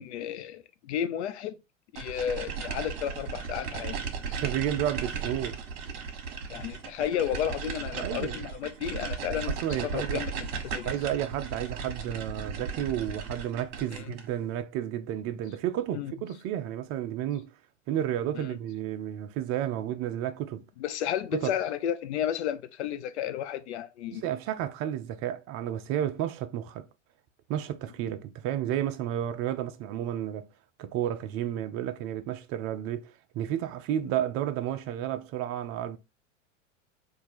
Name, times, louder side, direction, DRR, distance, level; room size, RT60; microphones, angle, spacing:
voice 1, 0.0-1.5 1.9-4.0 4.3-4.4 6.5-10.9 13.9-14.1 15.9-16.1 18.3-18.6 20.8-24.3, left 10 dB, 60° left, 0.8 m, -33 dB
sound 1, 2.0-14.3, right 5 dB, 50° right, 1.3 m, -36 dB
voice 2, 4.3-5.6 8.0-8.4 9.6-10.2 10.8-17.5 17.9-20.7 21.3-21.5 24.1-26.9 27.5-30.5 30.8-36.0, right 11 dB, 35° right, 0.6 m, -32 dB
4.6 x 2.7 x 4.2 m
hypercardioid pair, 100°, 38 cm